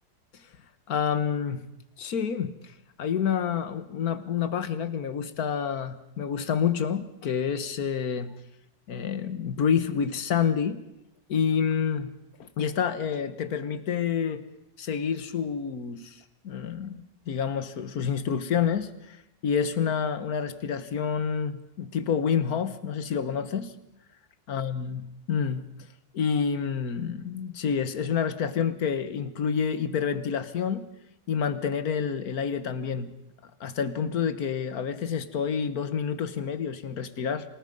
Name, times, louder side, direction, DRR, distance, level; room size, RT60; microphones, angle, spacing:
voice 1, 0.9-1.6 2.0-2.6 3.0-8.3 8.9-10.8 11.3-12.1 12.6-14.4 14.8-16.2 16.4-19.2 19.4-23.7 24.5-25.6 26.1-30.9 31.3-33.1 33.6-37.4, left 7 dB, 55° left, 13 dB, 1.6 m, -28 dB
27.5 x 19.5 x 5.3 m, 0.85 s
omnidirectional pair, 2.0 m